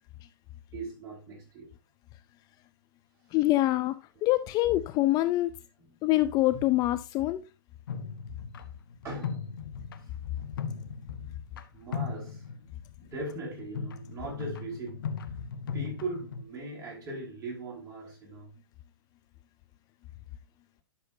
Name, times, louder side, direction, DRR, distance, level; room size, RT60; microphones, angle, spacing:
voice 1, 0.7-1.7 6.5-6.6 9.0-9.4 11.7-12.4 13.0-15.0 15.7-18.5, right 2 dB, 25° right, 5.5 m, -39 dB
voice 2, 3.3-4.0 4.2-5.5 6.0-7.4, left 16 dB, 30° left, 0.5 m, -25 dB
sound 1, 7.9-11.6 11.9-16.4, left 6 dB, 70° left, 1.1 m, -38 dB
11.5 x 6.3 x 2.7 m
hypercardioid pair, 120°, 12 cm